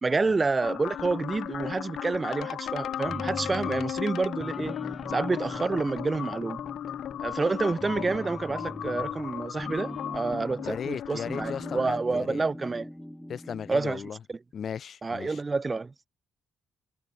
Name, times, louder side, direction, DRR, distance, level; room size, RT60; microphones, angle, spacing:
voice 1, 0.0-4.8 5.1-6.6 7.2-12.9 13.7-14.0 14.3-14.4 15.0-15.9, right 3 dB, 25° right, 0.4 m, -28 dB
sound 1, 0.6-11.9, left 10 dB, 70° left, 0.4 m, -36 dB
sound 2, 3.1-4.0 4.3-7.4 7.7-10.9 11.2-13.9, equal, 5° left, 4.5 m, -41 dB
voice 2, 10.6-12.4 13.3-14.2 14.5-15.4, left 7 dB, 55° left, 1.7 m, -36 dB
cardioid pair, 90°, 0 cm